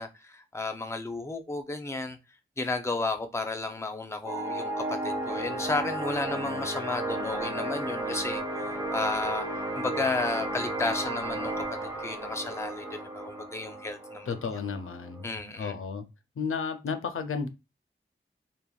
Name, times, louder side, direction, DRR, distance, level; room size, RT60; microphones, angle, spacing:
voice 1, 0.0-2.2 2.6-9.4 9.8-11.5 11.8-14.3 15.2-15.7, left 3 dB, 15° left, 0.5 m, -33 dB
sound 1, 4.2-15.3, right 1 dB, 15° right, 0.8 m, -33 dB
voice 2, 14.3-16.1 16.4-17.5, left 5 dB, 90° left, 0.5 m, -33 dB
3.3 x 2.1 x 2.3 m
wide cardioid pair, 55°, 21 cm